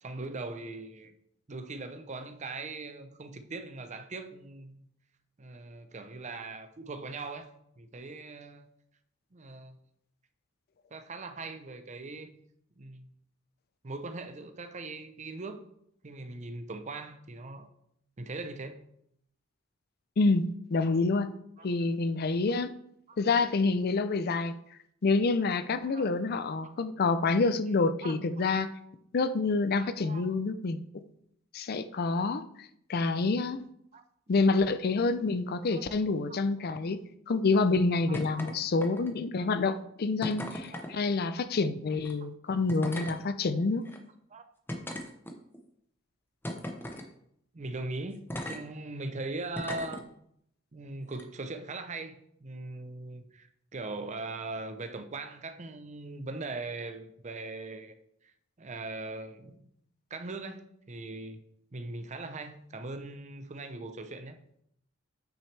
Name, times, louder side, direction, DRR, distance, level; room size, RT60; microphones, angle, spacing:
voice 1, 0.0-1.1 1.5-4.9 5.4-8.7 9.3-9.8 10.9-12.4 12.8-13.1 13.8-15.6 16.0-17.7 18.2-18.8 20.9-21.1 21.6-21.7 23.1-23.2 25.8-26.1 28.0-28.5 29.8-30.3 33.9-34.0 35.7-35.8 36.3-36.8 38.1-38.5 39.4-39.8 40.7-41.0 44.3-44.5 47.5-50.1 50.7-57.9 58.2-58.3 58.6-59.7 60.1-61.4 61.7-64.4, right 3 dB, 35° right, 0.6 m, -40 dB
voice 2, 20.2-21.3 21.6-22.7 23.2-24.5 25.0-28.7 29.1-30.8 31.5-33.6 34.3-43.9, left 3 dB, 50° left, 0.5 m, -27 dB
sound 1, 38.1-38.5 38.8-39.3 40.2-40.9 42.0-42.1 42.7-43.2 43.9-44.0 44.7-45.6 46.4-47.1 48.3-48.6 49.5-50.0 51.1-51.2, left 1 dB, 10° left, 0.8 m, -37 dB
8.8 x 6.1 x 3.3 m
head